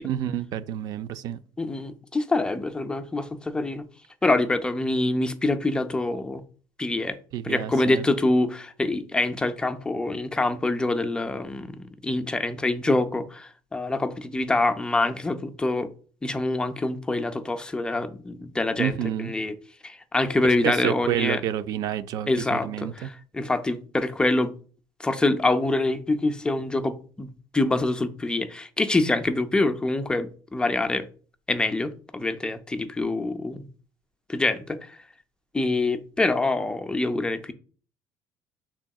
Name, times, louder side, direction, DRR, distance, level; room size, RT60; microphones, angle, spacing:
voice 1, 0.0-1.4 7.3-8.1 18.8-19.3 20.6-23.1, right 11 dB, 60° right, 0.3 m, -29 dB
voice 2, 1.6-3.9 4.2-6.4 6.8-7.2 7.4-15.9 16.2-19.5 19.8-21.4 22.3-24.5 25.0-27.3 27.5-31.1 31.5-33.7 34.3-35.0 35.5-37.5, left 2 dB, 10° left, 0.4 m, -25 dB
6.2 x 3.5 x 2.3 m
cardioid pair, 130°, 8 cm